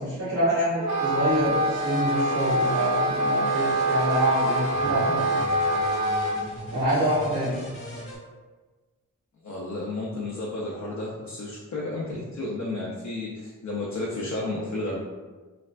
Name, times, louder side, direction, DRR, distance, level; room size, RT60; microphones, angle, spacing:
voice 1, 0.0-5.4 6.7-7.6, right 1 dB, 75° right, -11 dB, 1.4 m, -26 dB
Wind instrument woodwind instrument, 0.8-6.4, right 1 dB, 60° right, 0.5 m, -25 dB
sound 1, 1.3-8.2, left 1 dB, 45° left, 1.0 m, -40 dB
voice 2, 9.4-15.0, left 2 dB, 60° left, -4 dB, 0.6 m, -32 dB
3.2 x 2.1 x 2.5 m, 1.3 s
cardioid pair, 50°, 32 cm